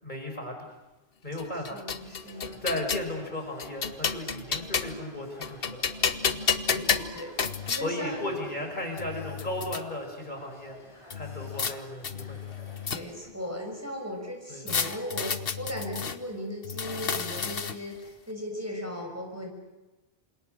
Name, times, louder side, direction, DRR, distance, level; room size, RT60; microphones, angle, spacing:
voice 1, 0.0-0.7 1.2-1.8 2.6-5.8 7.8-10.8 11.1-12.4 14.5-14.8, left 1 dB, 45° left, 2 dB, 5.4 m, -35 dB
sound 1, 1.4-3.1 3.6-5.1 5.4-7.8 8.6-8.7 9.0-9.8 11.1-11.7 12.0-13.3 14.7-16.2 16.6-18.0, left 6 dB, 65° left, 1.3 m, -31 dB
voice 2, 1.7-2.6 6.7-8.4 12.9-19.5, equal, 15° right, 1 dB, 5.9 m, -37 dB
sound 2, 2.0-13.2, left 1 dB, 30° left, 5.4 m, -52 dB
28.5 x 26.5 x 6.5 m, 1.1 s
omnidirectional pair, 1.1 m